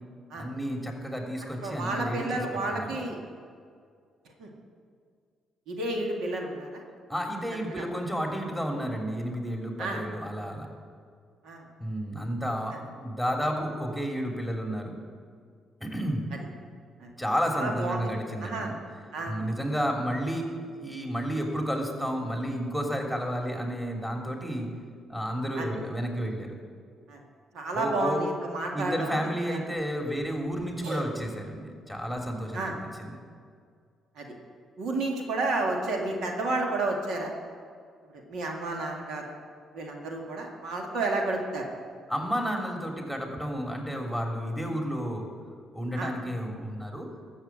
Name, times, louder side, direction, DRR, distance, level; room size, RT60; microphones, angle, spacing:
voice 1, 0.3-2.4 2.7-2.9 7.1-10.7 11.8-15.0 15.8-16.3 17.2-18.7 19.3-20.5 20.7-24.7 25.1-26.6 27.7-28.2 28.7-33.2 42.1-45.3 45.7-47.1, equal, 5° right, 1 dB, 3.1 m, -31 dB
voice 2, 1.6-3.2 4.4-4.5 5.7-6.8 7.8-7.9 9.8-10.0 11.4-11.6 17.0-17.1 17.5-18.0 18.4-18.7 19.1-19.3 25.6-25.7 27.1-27.2 27.5-29.6 30.8-31.0 32.5-32.7 34.2-34.3 34.8-37.3 38.1-39.3 39.7-41.7 45.9-46.1, right 2 dB, 75° right, 1 dB, 2.1 m, -31 dB
13.5 x 7.1 x 8.7 m, 2.1 s
supercardioid pair, 60°, 0 cm